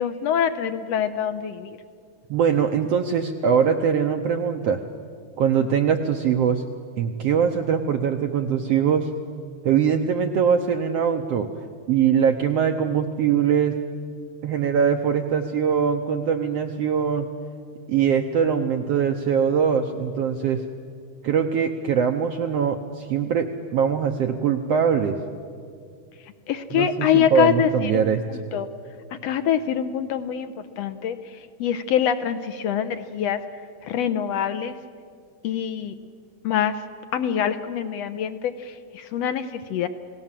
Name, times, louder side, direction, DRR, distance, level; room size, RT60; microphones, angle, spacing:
voice 1, 0.0-1.8 26.5-28.1 28.5-28.7 29.2-31.2 31.6-33.4 33.8-34.7 35.4-35.9 36.4-36.8 37.1-39.9, left 9 dB, 75° left, 11 dB, 1.5 m, -24 dB
voice 2, 2.3-4.8 5.4-6.6 7.0-9.1 9.6-11.5 11.9-13.7 14.4-17.3 17.9-20.6 21.2-25.2 26.7-28.4, right 7 dB, 75° right, 5 dB, 1.5 m, -22 dB
29.5 x 18.0 x 7.5 m, 2.2 s
omnidirectional pair, 3.8 m